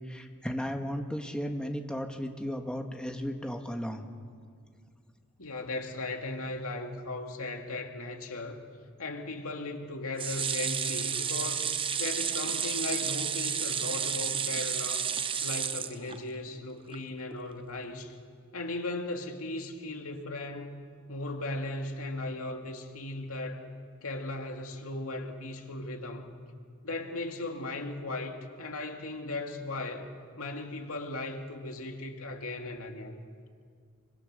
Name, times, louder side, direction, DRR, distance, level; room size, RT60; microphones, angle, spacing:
voice 1, 0.1-4.0, equal, 5° left, 1.6 m, -35 dB
voice 2, 5.4-8.6 9.0-11.7 12.0-15.1 15.4-18.1 18.5-20.7 21.1-23.6 24.0-26.3 26.8-30.1 30.4-33.2, left 2 dB, 80° left, 2.3 m, -37 dB
sound 1, 10.2-16.5 16.9-17.0 17.3-17.4, right 7 dB, 25° right, 0.7 m, -31 dB
26.0 x 24.5 x 6.7 m
head